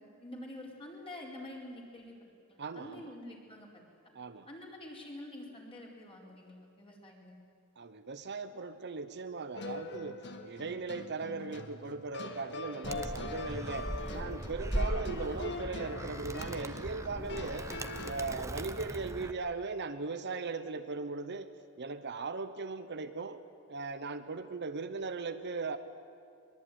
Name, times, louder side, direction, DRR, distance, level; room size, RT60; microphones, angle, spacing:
voice 1, 0.0-2.2 2.5-3.7 4.5-7.4, left 1 dB, 25° left, -1 dB, 4.7 m, -47 dB
voice 2, 2.6-3.1 4.1-4.5 7.8-17.7 18.0-21.5 21.8-23.4 23.7-25.8, right 4 dB, 55° right, 10 dB, 1.0 m, -38 dB
sound 1, 9.5-18.4, left 2 dB, 55° left, 1.9 m, -43 dB
Animal, 12.8-19.3, right 1 dB, 15° right, 0.9 m, -39 dB
22.5 x 21.5 x 9.5 m, 2.4 s
head